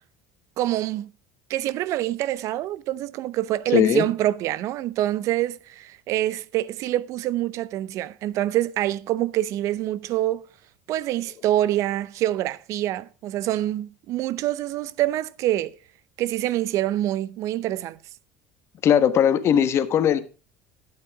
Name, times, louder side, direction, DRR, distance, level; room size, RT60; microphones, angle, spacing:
voice 1, 0.6-1.1 1.5-10.5 10.9-15.8 16.2-18.0, right 14 dB, 60° right, 0.7 m, -26 dB
voice 2, 3.7-4.1 18.8-20.2, left 9 dB, 45° left, 1.3 m, -19 dB
12.0 x 8.9 x 4.7 m
supercardioid pair, 100°, 6 cm